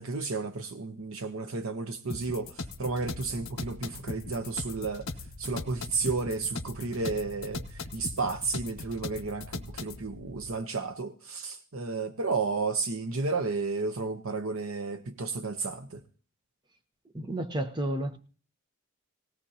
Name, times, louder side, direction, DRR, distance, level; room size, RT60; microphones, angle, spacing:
voice 1, 0.0-5.1 5.4-16.0, right 3 dB, 75° right, 0.8 m, -32 dB
sound 1, 2.1-10.0, left 3 dB, 65° left, 1.1 m, -39 dB
sound 2, 2.7-10.5, left 1 dB, 50° right, 4.1 m, -48 dB
voice 2, 17.1-18.2, right 1 dB, 20° right, 0.9 m, -31 dB
18.0 x 16.5 x 2.8 m
head